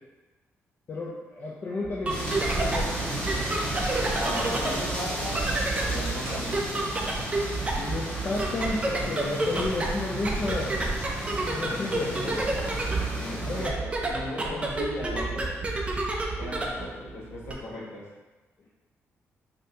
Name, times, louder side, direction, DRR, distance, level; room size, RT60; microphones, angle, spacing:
voice 1, 0.9-2.2 2.5-3.0 7.8-10.8 11.5-12.1 13.4-13.7 14.4-14.6, left 3 dB, 40° left, -4 dB, 0.4 m, -32 dB
sound 1, 1.8-17.5, right 2 dB, 25° right, 0.5 m, -30 dB
sound 2, 2.1-13.7, equal, 15° left, 1.5 m, -34 dB
voice 2, 4.1-5.5 5.9-6.7 11.6-12.5 13.1-15.7 16.4-18.1, left 1 dB, 65° left, -6 dB, 1.2 m, -38 dB
sound 3, 4.2-6.6, equal, 50° right, 0.8 m, -38 dB
5.3 x 2.7 x 2.8 m, 1.2 s
wide cardioid pair, 160°, 5 cm